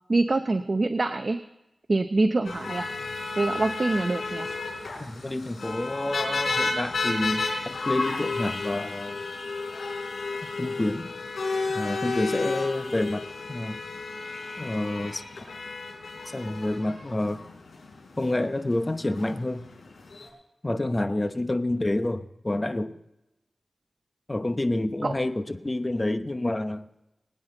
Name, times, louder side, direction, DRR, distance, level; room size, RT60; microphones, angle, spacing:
voice 1, 0.1-1.4 1.9-2.9 3.4-4.5 25.0-25.1, right 2 dB, 45° right, 0.7 m, -25 dB
sound 1, 2.4-20.3, left 3 dB, 85° left, 4.0 m, -32 dB
voice 2, 5.0-9.2 10.6-11.1 11.7-13.8 14.6-15.2 16.3-17.4 18.2-19.7 20.6-23.0 24.3-26.9, left 1 dB, 25° left, 0.9 m, -28 dB
22.0 x 9.7 x 3.9 m
wide cardioid pair, 60°, 0 cm